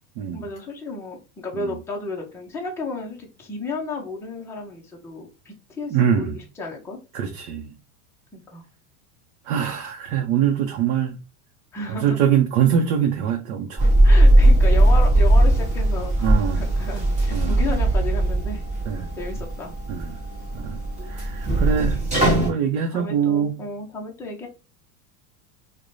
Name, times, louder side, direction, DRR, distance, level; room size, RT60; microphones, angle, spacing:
voice 1, 0.3-7.0 8.3-8.6 11.7-12.2 14.0-18.6 19.2-19.7 22.9-24.5, left 3 dB, 5° left, 0.5 m, -33 dB
voice 2, 5.9-6.4 7.1-7.7 9.5-11.2 11.9-13.9 16.2-16.6 17.3-17.5 18.9-19.1 19.9-20.1 20.5-20.8 21.1-22.0 22.4-23.6, right 8 dB, 65° right, 0.7 m, -23 dB
sound 1, 13.8-22.5, right 1 dB, 15° right, 1.1 m, -18 dB
4.7 x 2.2 x 2.6 m
supercardioid pair, 150°, 44 cm